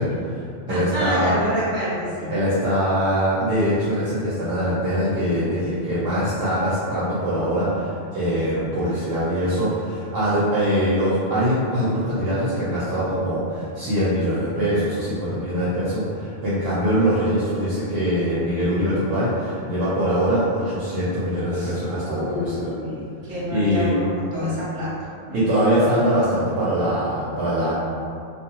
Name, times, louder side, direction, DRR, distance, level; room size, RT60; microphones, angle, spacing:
voice 1, 0.0-1.4 2.3-22.7 23.5-23.9 25.3-27.7, equal, 60° right, -10 dB, 0.7 m, -23 dB
voice 2, 0.7-2.3 21.5-21.8 22.1-24.9 25.3-25.4, equal, 30° right, -11 dB, 1.0 m, -27 dB
2.4 x 2.3 x 2.9 m, 2.4 s
omnidirectional pair, 1.3 m